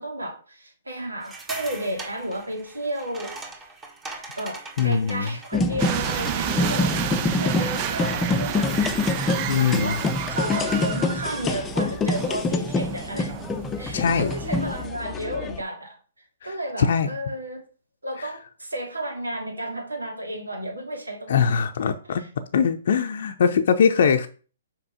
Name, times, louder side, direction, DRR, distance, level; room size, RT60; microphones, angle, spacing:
voice 1, 0.0-3.4 4.4-8.8 9.5-13.3 13.8-16.0 16.4-17.6 18.0-21.6, right 1 dB, 90° right, 3 dB, 2.3 m, -32 dB
sound 1, 1.2-9.3, right 3 dB, 15° right, 1.7 m, -42 dB
voice 2, 4.8-5.3 9.5-10.0 13.9-14.3 16.4-17.1 18.2-18.3 21.3-22.2 22.5-24.3, left 6 dB, 60° left, 6 dB, 0.6 m, -22 dB
sound 2, 5.5-15.6, left 3 dB, 15° left, 0.7 m, -26 dB
sound 3, 5.8-14.9, right 10 dB, 35° right, 0.6 m, -31 dB
6.0 x 5.2 x 5.0 m, 0.38 s
figure-of-eight pair, 130°, 0 cm